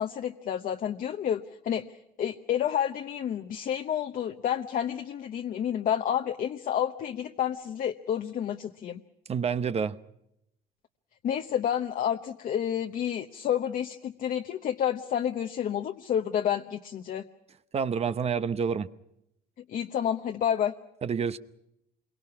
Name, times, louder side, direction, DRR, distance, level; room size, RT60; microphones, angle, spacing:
voice 1, 0.0-1.8 2.2-9.0 11.2-17.2 19.7-20.7, left 9 dB, 55° left, 1.0 m, -29 dB
voice 2, 9.3-10.0 17.7-18.9 21.0-21.4, right 6 dB, 40° right, 0.8 m, -28 dB
27.0 x 23.5 x 5.9 m
cardioid pair, 110°, 17 cm